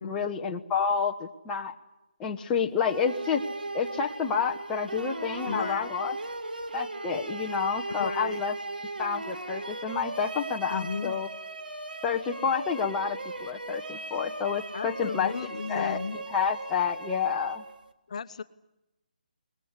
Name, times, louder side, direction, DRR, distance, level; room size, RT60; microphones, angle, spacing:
voice 1, 0.0-1.7 2.2-3.4 3.7-6.2 6.7-8.5 9.0-11.3 12.0-15.3 15.7-17.6, left 6 dB, 15° left, 1 dB, 1.1 m, -29 dB
sound 1, 2.8-17.9, right 2 dB, 85° right, 2.3 m, -37 dB
voice 2, 5.4-5.9 7.9-8.4 10.7-11.2 14.7-16.1 18.1-18.4, left 5 dB, 50° left, 10 dB, 1.2 m, -35 dB
22.5 x 20.5 x 9.7 m, 0.92 s
figure-of-eight pair, 155°, 5 cm